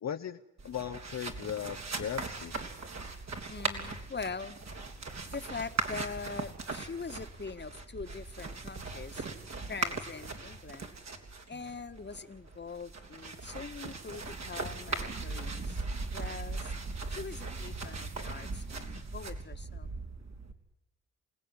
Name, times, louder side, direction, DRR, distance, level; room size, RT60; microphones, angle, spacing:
voice 1, 0.0-2.5, left 9 dB, 60° left, 7 dB, 1.0 m, -38 dB
sound 1, 0.6-20.5, right 3 dB, 60° right, 3.6 m, -39 dB
voice 2, 3.5-4.6 5.3-9.3 9.7-10.9 11.5-15.8 16.1-16.7 17.1-19.9, left 4 dB, 35° left, 10 dB, 1.6 m, -42 dB
28.0 x 17.0 x 9.8 m, 0.91 s
supercardioid pair, 50°, 30 cm